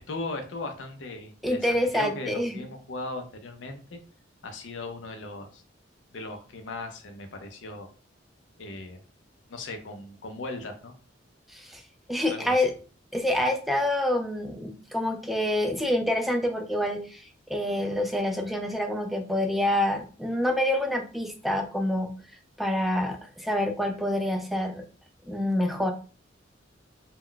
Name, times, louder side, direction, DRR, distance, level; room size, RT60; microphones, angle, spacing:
voice 1, 0.0-4.0 4.4-5.6 6.1-7.9 8.6-9.0 9.5-10.9 12.3-12.5, left 2 dB, 75° left, 6 dB, 0.5 m, -38 dB
voice 2, 1.4-2.7 11.5-11.8 12.1-12.7 13.1-22.1 22.6-24.8 25.3-25.9, left 1 dB, ahead, 4 dB, 0.3 m, -27 dB
2.2 x 2.1 x 3.7 m, 0.39 s
head